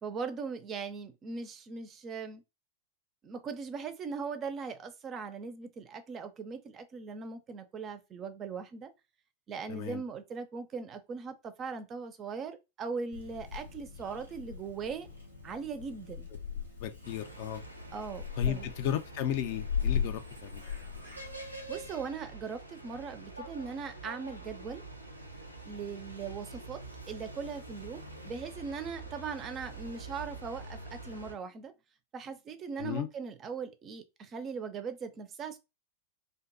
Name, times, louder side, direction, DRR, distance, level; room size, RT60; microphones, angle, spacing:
voice 1, 0.0-2.4 3.2-8.9 9.5-15.1 15.4-16.3 17.9-18.7 21.7-24.8 25.7-31.7 32.1-35.6, right 5 dB, 30° right, 0.4 m, -39 dB
voice 2, 9.7-10.0 16.8-17.6 18.4-20.6 32.8-33.1, left 10 dB, 50° left, 0.3 m, -34 dB
Purr / Meow, 13.1-21.9, left 7 dB, 90° left, 0.8 m, -38 dB
sound 1, 17.0-31.3, right 2 dB, 85° right, 0.4 m, -46 dB
2.5 x 2.2 x 2.5 m
figure-of-eight pair, 90°, 0 cm